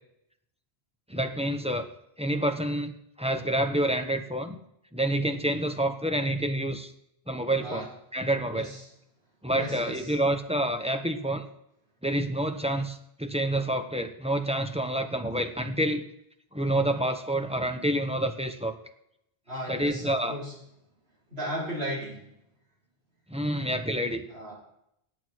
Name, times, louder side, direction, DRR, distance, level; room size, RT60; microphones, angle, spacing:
voice 1, 1.1-1.9 2.2-4.6 4.9-6.9 7.3-7.9 8.1-8.7 9.4-11.4 12.0-16.1 16.5-18.7 19.7-20.4 23.3-24.2, right 1 dB, 5° right, 6 dB, 0.9 m, -28 dB
voice 2, 8.5-8.8 9.5-10.1 19.5-20.5 21.3-22.2 24.3-24.5, equal, 75° right, -5 dB, 4.9 m, -35 dB
17.5 x 8.7 x 4.6 m, 0.77 s
omnidirectional pair, 1.1 m